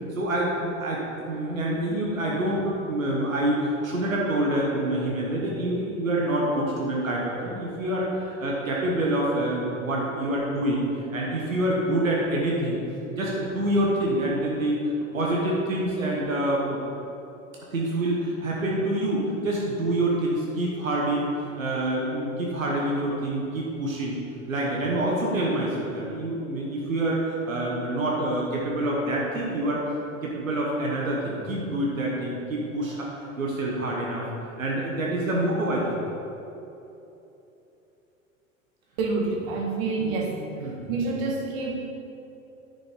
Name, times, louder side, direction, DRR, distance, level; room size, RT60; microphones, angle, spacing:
voice 1, 0.1-10.8 11.1-12.8 13.1-14.8 15.1-16.8 17.7-21.3 21.6-24.2 24.5-29.8 30.2-33.1 33.4-34.3 34.6-36.0 40.0-40.3 40.6-41.0, right 1 dB, 80° right, -3 dB, 1.3 m, -26 dB
voice 2, 39.0-40.3 40.9-41.7, right 3 dB, 50° right, 0 dB, 1.5 m, -27 dB
10.0 x 5.9 x 3.7 m, 3.0 s
figure-of-eight pair, 85°, 40 cm